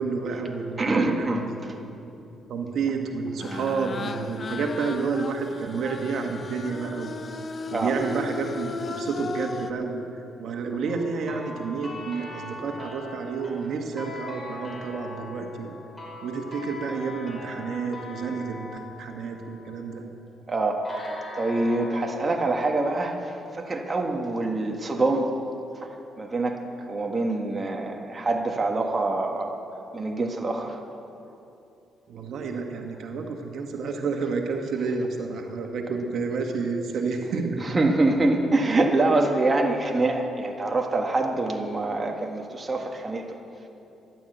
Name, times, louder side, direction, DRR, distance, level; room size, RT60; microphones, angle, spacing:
voice 1, 0.0-1.6 1.9-2.1 2.5-7.1 7.7-15.7 16.2-20.0 32.1-37.6, right 4 dB, 70° right, 3 dB, 1.8 m, -30 dB
voice 2, 0.8-1.8 7.7-7.9 20.5-20.8 21.4-25.3 25.7-26.6 26.9-29.6 29.9-30.8 37.6-43.4, right 2 dB, 25° right, 2 dB, 1.6 m, -25 dB
sound 1, 3.4-9.7, left 4 dB, 40° left, 0.9 m, -36 dB
sound 2, 10.8-20.1 20.8-23.7, left 2 dB, 15° left, 4.9 m, -41 dB
14.0 x 11.5 x 8.1 m, 2.8 s
cardioid pair, 90°, 0 cm